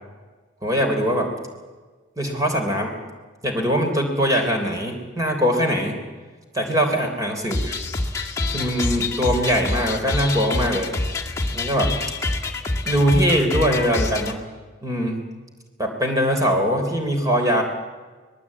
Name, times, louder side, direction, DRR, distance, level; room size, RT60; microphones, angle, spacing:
voice 1, 0.6-1.3 2.2-2.9 3.4-6.0 6.5-7.6 8.5-10.9 11.5-11.9 12.8-14.4 14.8-15.2 15.8-17.6, equal, 15° right, 3 dB, 3.3 m, -21 dB
sound 1, 7.5-14.3, left 2 dB, 15° left, 1.9 m, -26 dB
24.5 x 20.0 x 8.5 m, 1.4 s
head